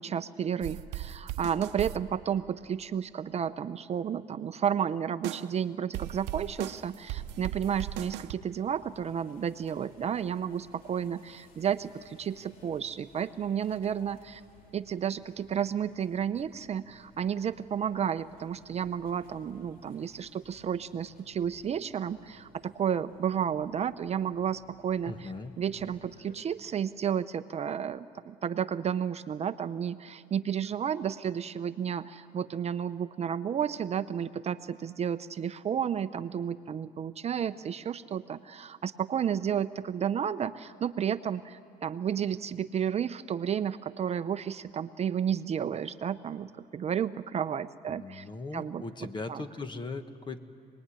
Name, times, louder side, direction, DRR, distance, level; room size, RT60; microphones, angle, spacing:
voice 1, 0.0-14.4 14.7-48.3 48.5-49.4, right 8 dB, 40° right, 12 dB, 0.6 m, -32 dB
sound 1, 0.6-2.0 5.2-5.5 5.9-8.3, right 13 dB, 90° right, 0.8 m, -37 dB
sound 2, 7.0-26.4, left 3 dB, 55° left, 3.0 m, -59 dB
voice 2, 25.1-25.5 47.9-50.4, left 3 dB, 25° left, 9 dB, 1.4 m, -39 dB
27.0 x 20.0 x 9.9 m, 2.4 s
cardioid pair, 110°, 17 cm